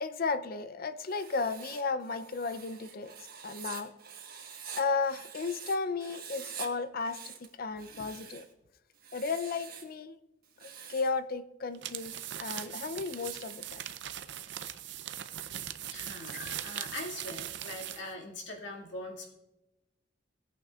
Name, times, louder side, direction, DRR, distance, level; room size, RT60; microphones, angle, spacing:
voice 1, 0.0-3.1 3.4-3.9 4.7-8.4 9.1-10.2 10.6-12.1 12.4-13.8 16.3-16.6, left 4 dB, 50° left, 12 dB, 0.6 m, -34 dB
Writing, 1.0-5.8 6.0-6.7 7.0-8.5 9.0-9.9 10.4-11.2 11.9-13.9, right 7 dB, 50° right, 1.4 m, -47 dB
sound 1, 11.7-18.1, right 11 dB, 65° right, 0.6 m, -40 dB
voice 2, 15.9-19.3, left 2 dB, 70° left, -1 dB, 2.2 m, -42 dB
17.5 x 8.8 x 2.4 m, 0.96 s
head